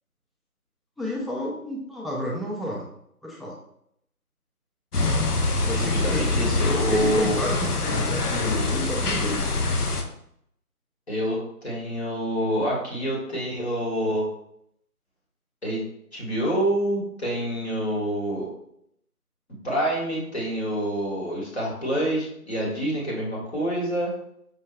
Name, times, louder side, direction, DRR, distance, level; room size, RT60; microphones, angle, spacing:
voice 1, 1.0-2.9 3.2-3.6 5.6-6.3 6.7-9.4, equal, ahead, -5 dB, 0.4 m, -31 dB
sound 1, 4.9-10.0, left 3 dB, 80° left, 0.7 m, -24 dB
voice 2, 5.7-7.4 11.1-14.3 15.6-15.8 16.1-18.5 19.6-24.1, right 1 dB, 45° left, -5 dB, 1.4 m, -27 dB
5.2 x 2.4 x 2.2 m, 0.73 s
figure-of-eight pair, 165°, 45 cm